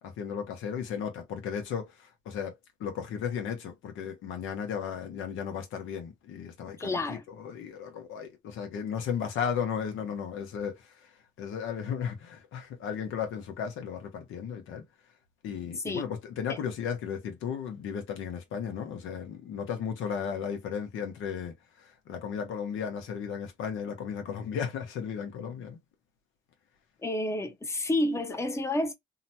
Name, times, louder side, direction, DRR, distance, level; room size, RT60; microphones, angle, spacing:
voice 1, 0.0-14.8 15.4-25.8, left 7 dB, 80° left, 0.9 m, -35 dB
voice 2, 6.8-7.2 15.8-16.0 16.5-16.6 27.0-28.9, left 1 dB, 15° left, 0.7 m, -29 dB
2.8 x 2.1 x 2.7 m
cardioid pair, 90°, 20 cm